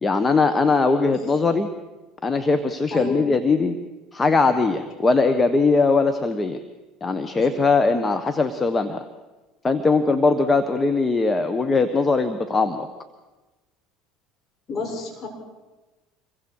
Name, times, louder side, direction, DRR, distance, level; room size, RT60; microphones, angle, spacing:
voice 1, 0.0-1.7 2.2-3.8 4.1-6.6 7.0-9.0 9.6-12.9, left 3 dB, 20° left, 8 dB, 1.5 m, -20 dB
voice 2, 2.9-3.2 14.7-15.3, left 4 dB, 40° left, 1 dB, 7.3 m, -30 dB
27.5 x 23.0 x 4.9 m, 1.2 s
hypercardioid pair, 75°, 0 cm